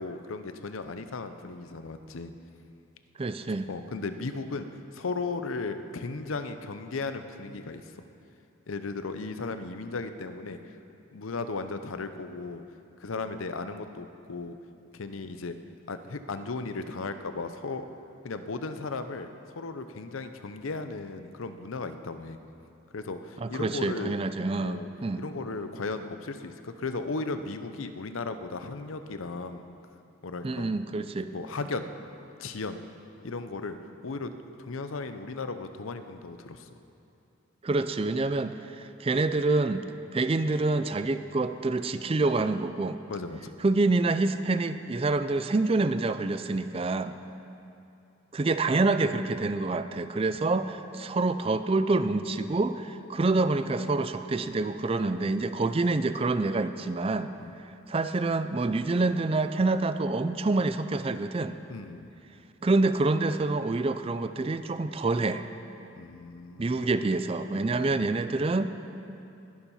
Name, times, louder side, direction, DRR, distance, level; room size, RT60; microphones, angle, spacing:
voice 1, 0.0-2.3 3.7-4.7 4.9-7.9 8.7-10.6 11.1-12.6 13.0-14.6 14.9-15.6 15.9-17.9 18.2-19.3 19.6-22.4 22.9-24.1 24.6-24.9 25.2-29.6 30.2-30.7 31.3-31.9 32.4-32.8 33.2-33.8 34.0-34.3 34.6-36.8 43.1-43.5 57.4-57.5 61.7-62.1 66.0-66.9 67.5-68.4, left 3 dB, 85° left, 9 dB, 0.7 m, -36 dB
voice 2, 3.2-3.7 23.4-25.2 30.4-31.3 37.6-39.8 40.1-43.0 43.6-47.1 48.3-57.3 57.9-61.6 62.6-65.4 66.6-68.7, right 3 dB, 30° right, 11 dB, 0.4 m, -27 dB
20.5 x 7.2 x 5.6 m, 2.7 s
head